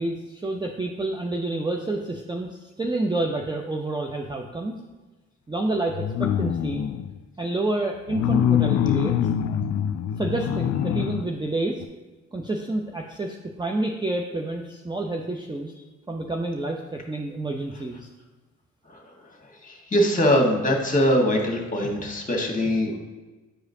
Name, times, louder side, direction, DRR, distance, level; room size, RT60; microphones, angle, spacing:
voice 1, 0.0-4.8 5.5-6.8 7.4-9.1 10.2-11.8 12.3-15.7 16.1-18.1, right 2 dB, 10° right, 0 dB, 0.6 m, -29 dB
sound 1, 5.9-7.2 8.1-11.3 11.8-11.9, left 9 dB, 45° left, 0.4 m, -24 dB
voice 2, 19.6-23.0, equal, 20° left, 1 dB, 1.6 m, -22 dB
8.9 x 4.9 x 2.7 m, 1.2 s
hypercardioid pair, 40°, 37 cm